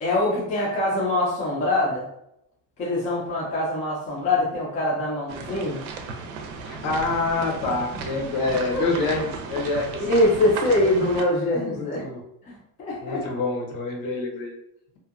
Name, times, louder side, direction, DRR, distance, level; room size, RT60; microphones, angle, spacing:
voice 1, 0.0-2.1 2.8-5.8 8.7-8.9 10.0-12.0 12.4-13.2, left 1 dB, 20° left, -4 dB, 0.4 m, -23 dB
sound 1, 5.3-11.2, right 4 dB, 80° right, 0.6 m, -35 dB
voice 2, 6.7-10.0 11.8-12.2 13.0-14.5, left 3 dB, 75° left, 1 dB, 0.9 m, -26 dB
2.7 x 2.2 x 2.4 m, 0.78 s
cardioid pair, 170°, 42 cm